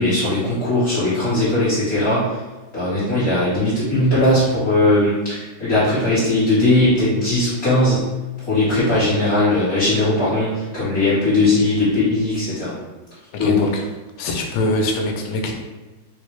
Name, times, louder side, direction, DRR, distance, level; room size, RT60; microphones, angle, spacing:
voice 1, 0.0-2.4 2.7-8.1 8.5-12.8 13.4-13.7, left 2 dB, 50° left, -12 dB, 1.5 m, -19 dB
voice 2, 13.3-13.8 14.2-15.5, left 2 dB, 80° left, 2 dB, 1.4 m, -23 dB
4.2 x 2.1 x 3.1 m, 1.2 s
omnidirectional pair, 2.3 m